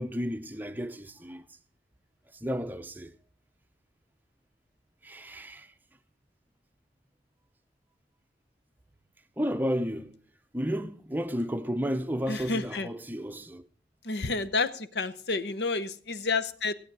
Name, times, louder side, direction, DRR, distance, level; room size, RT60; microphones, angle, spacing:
voice 1, 0.0-1.4 2.4-3.1 5.0-5.7 9.4-10.2 10.5-13.7, equal, 10° right, 0.6 m, -32 dB
voice 2, 12.3-12.9 14.0-16.7, left 3 dB, 65° left, 0.8 m, -30 dB
16.0 x 8.6 x 6.1 m
head